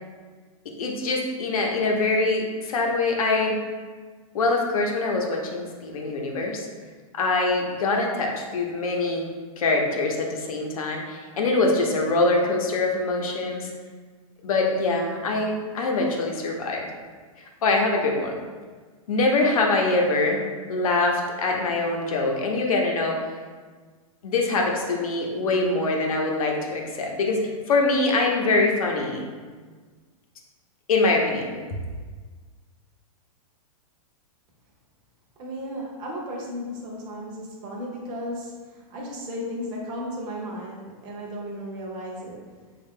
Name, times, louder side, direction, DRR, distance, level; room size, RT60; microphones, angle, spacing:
voice 1, 0.8-3.6 4.3-6.7 7.1-9.3 9.6-13.7 14.4-16.9 17.6-18.3 19.1-20.4 20.7-23.3 24.2-27.4 27.7-29.2 30.9-31.5, left 3 dB, 75° left, 0 dB, 0.8 m, -24 dB
voice 2, 35.4-42.6, equal, 25° right, -2 dB, 0.6 m, -35 dB
3.7 x 2.4 x 3.6 m, 1.5 s
hypercardioid pair, 160°, 18 cm